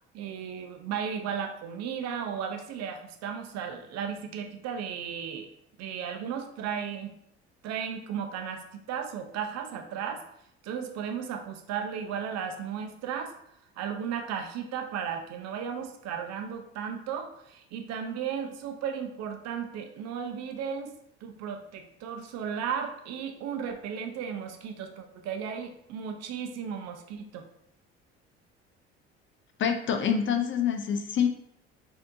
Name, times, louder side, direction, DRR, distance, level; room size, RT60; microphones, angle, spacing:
voice 1, 0.1-5.5 5.8-7.1 7.6-10.2 10.6-13.3 13.8-20.9 21.2-27.5, right 7 dB, 55° right, 5 dB, 0.7 m, -35 dB
voice 2, 29.6-31.3, left 7 dB, 40° left, 6 dB, 0.5 m, -26 dB
4.2 x 2.8 x 2.7 m, 0.73 s
hypercardioid pair, 60°, 31 cm